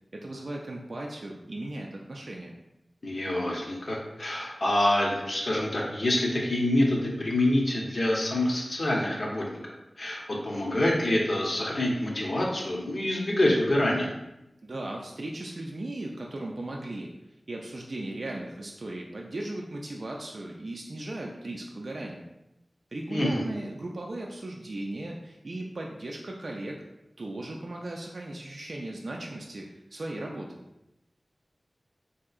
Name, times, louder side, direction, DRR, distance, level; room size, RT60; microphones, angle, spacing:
voice 1, 0.1-2.5 14.6-17.1 17.5-22.2 22.9-26.8 27.2-30.6, right 1 dB, 65° right, -1 dB, 0.3 m, -37 dB
voice 2, 3.0-9.6 10.0-14.1 23.1-23.4, left 1 dB, 60° left, -3 dB, 0.7 m, -26 dB
3.5 x 2.8 x 2.4 m, 0.91 s
wide cardioid pair, 80°, 0 cm